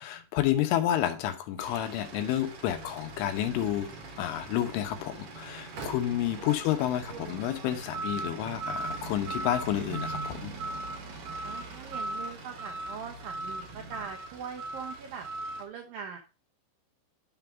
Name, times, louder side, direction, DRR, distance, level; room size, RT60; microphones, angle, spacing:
voice 1, 0.0-3.9 4.2-10.5, left 12 dB, 80° left, 6 dB, 3.4 m, -30 dB
sound 1, 1.6-15.6, right 2 dB, 60° right, 1.8 m, -40 dB
sound 2, 2.7-14.1, right 2 dB, 45° left, 3.1 m, -47 dB
voice 2, 11.4-15.3 15.5-16.2, right 7 dB, 80° right, 2 dB, 2.0 m, -42 dB
11.5 x 3.9 x 4.4 m, 0.32 s
omnidirectional pair, 5.7 m